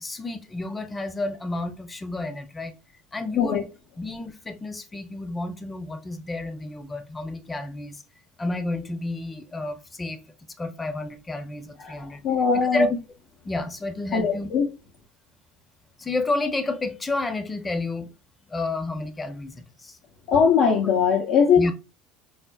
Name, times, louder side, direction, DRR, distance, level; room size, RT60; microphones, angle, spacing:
voice 1, 0.0-2.7 3.1-3.7 4.0-8.0 8.4-10.2 10.6-12.2 12.5-12.9 13.4-14.5 16.0-18.1 18.5-20.0 21.6-21.7, left 2 dB, 20° left, 0.7 m, -30 dB
voice 2, 11.8-12.9 14.1-14.7 20.3-21.7, left 6 dB, 60° left, 0.5 m, -21 dB
4.8 x 2.0 x 2.3 m
hypercardioid pair, 75°, 0 cm